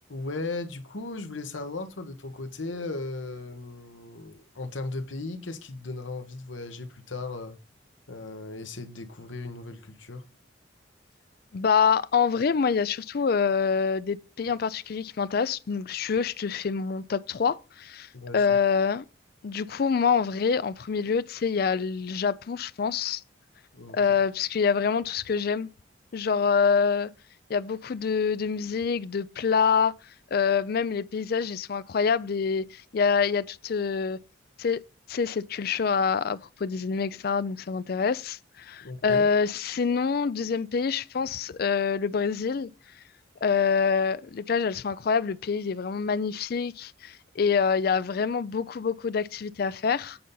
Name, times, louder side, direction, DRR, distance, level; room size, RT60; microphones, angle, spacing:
voice 1, 0.1-7.6 8.1-10.2 18.1-18.5 23.7-24.0 38.8-39.2, left 3 dB, 80° left, 1.1 m, -37 dB
voice 2, 11.5-19.0 19.4-23.2 23.9-25.7 26.1-27.1 27.5-29.9 30.3-34.2 34.6-34.8 35.1-42.7 43.4-50.2, left 6 dB, 50° left, 0.4 m, -26 dB
8.6 x 4.0 x 5.5 m
head